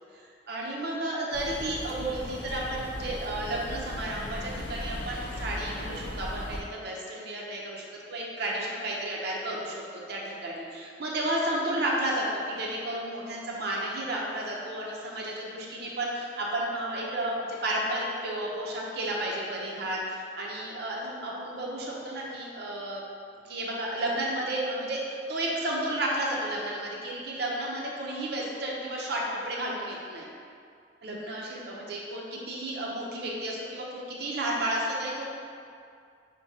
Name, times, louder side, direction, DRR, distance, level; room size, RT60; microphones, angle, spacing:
voice 1, 0.5-23.0 23.4-30.3 31.0-35.3, right 1 dB, 60° right, -3 dB, 0.6 m, -32 dB
sound 1, 1.3-6.6, left 1 dB, 85° left, 0.6 m, -37 dB
5.8 x 2.2 x 2.7 m, 2.3 s
head